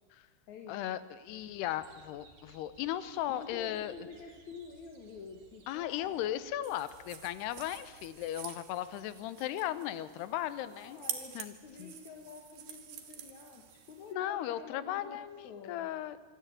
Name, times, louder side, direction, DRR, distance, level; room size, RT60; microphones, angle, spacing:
voice 1, 0.7-3.9 5.7-11.0 11.4-11.5 11.8-11.9 14.1-16.2, left 12 dB, 90° left, 15 dB, 2.9 m, -36 dB
sound 1, 1.3-8.3, right 3 dB, 55° right, 3.8 m, -61 dB
voice 2, 3.3-6.3 10.6-15.9, left 5 dB, 60° left, 3 dB, 2.4 m, -48 dB
sound 2, 6.6-14.1, right 9 dB, 75° right, 3.6 m, -47 dB
26.0 x 12.5 x 9.2 m, 1.5 s
omnidirectional pair, 4.7 m